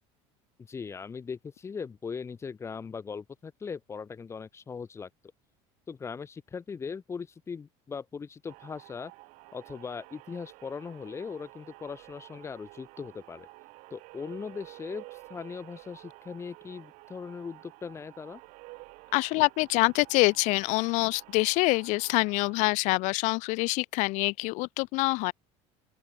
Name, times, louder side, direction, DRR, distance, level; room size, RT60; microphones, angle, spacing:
voice 1, 0.7-5.1 5.9-9.1 9.5-13.5 13.9-15.0 15.3-18.4, left 5 dB, 20° left, 4.0 m, -39 dB
sound 1, 8.5-22.7, right 25 dB, 65° right, 4.5 m, -51 dB
voice 2, 19.1-25.3, left 25 dB, 60° left, 0.5 m, -25 dB
open air
cardioid pair, 160°, 14 cm